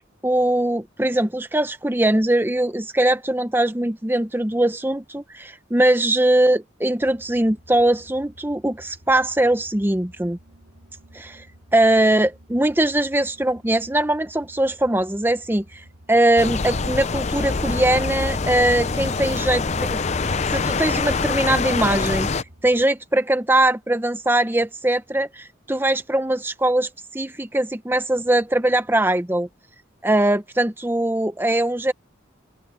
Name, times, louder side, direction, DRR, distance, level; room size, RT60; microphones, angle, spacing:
voice 1, 0.2-10.4 11.1-11.4 11.7-20.0 20.5-22.3 22.6-29.5 30.0-31.9, right 1 dB, 10° right, 0.7 m, -21 dB
sound 1, 7.0-22.9, equal, 70° right, 4.5 m, -51 dB
sound 2, 16.4-22.4, left 4 dB, 35° left, 0.5 m, -24 dB
open air
head